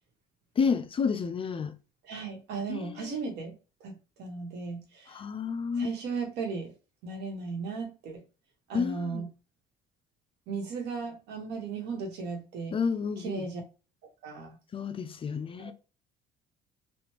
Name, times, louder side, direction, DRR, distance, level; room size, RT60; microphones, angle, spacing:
voice 1, 0.6-1.7 2.7-3.2 5.1-5.9 8.7-9.2 12.7-13.4 14.7-15.7, left 5 dB, 30° left, 0.4 m, -30 dB
voice 2, 2.0-3.5 3.8-5.2 5.8-6.7 7.0-8.2 8.7-9.3 10.5-12.8 13.2-13.6 14.0-14.6 15.6-15.7, right 4 dB, 85° right, 1.3 m, -36 dB
3.4 x 2.4 x 2.9 m
cardioid pair, 110°, 17 cm